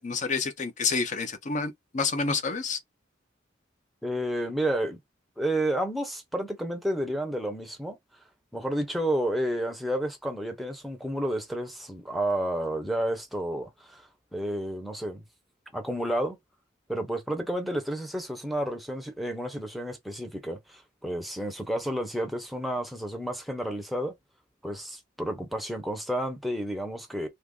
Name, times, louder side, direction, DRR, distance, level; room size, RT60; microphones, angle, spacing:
voice 1, 0.0-2.8, left 4 dB, 40° left, 0.6 m, -29 dB
voice 2, 4.0-5.0 5.4-8.0 8.5-15.2 15.7-16.4 16.9-24.1 24.6-27.3, right 1 dB, ahead, 0.7 m, -31 dB
2.8 x 2.5 x 3.7 m
head